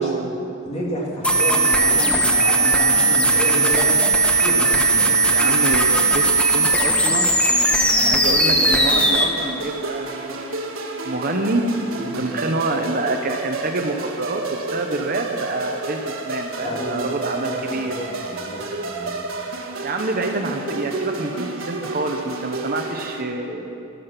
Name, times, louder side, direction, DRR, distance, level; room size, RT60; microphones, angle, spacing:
voice 1, 0.0-5.5 12.0-12.2 16.6-19.2, equal, 35° left, -3 dB, 2.9 m, -30 dB
sound 1, 1.2-9.2, right 2 dB, 5° left, 1.2 m, -17 dB
voice 2, 5.3-7.3 7.9-10.4 11.0-11.7 12.2-14.4 14.7-18.0 19.8-23.7, right 2 dB, 45° right, 4 dB, 1.0 m, -27 dB
sound 2, 8.4-23.2, right 2 dB, 80° right, 1.5 m, -31 dB
14.5 x 13.0 x 6.0 m, 2.7 s
head